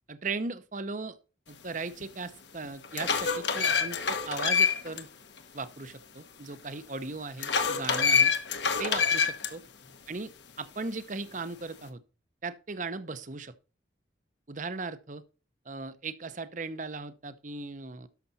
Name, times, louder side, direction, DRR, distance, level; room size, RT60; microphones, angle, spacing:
voice 1, 0.1-1.2 1.5-5.1 5.5-8.3 8.8-9.6 10.1-10.3 10.6-12.0 12.4-13.5 14.5-15.2 15.7-18.1, right 3 dB, 45° right, 0.8 m, -37 dB
sound 1, 2.0-2.1 2.6-5.0 5.4-5.5 7.4-9.5, left 6 dB, 70° left, 1.3 m, -26 dB
12.0 x 6.7 x 4.1 m
head